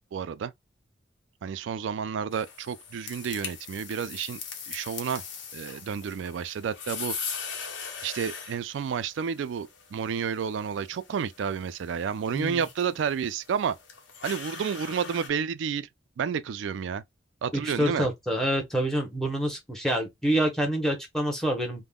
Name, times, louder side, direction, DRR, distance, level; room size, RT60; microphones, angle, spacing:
voice 1, 0.1-0.5 1.4-4.4 4.7-5.2 5.5-7.1 8.0-13.8 14.2-15.9 16.2-17.0 17.4-18.1, right 7 dB, 80° right, 0.3 m, -30 dB
sound 1, 2.3-15.3, left 6 dB, 90° left, 0.9 m, -41 dB
voice 2, 17.5-21.8, right 1 dB, 5° left, 0.8 m, -27 dB
3.5 x 2.1 x 2.3 m
head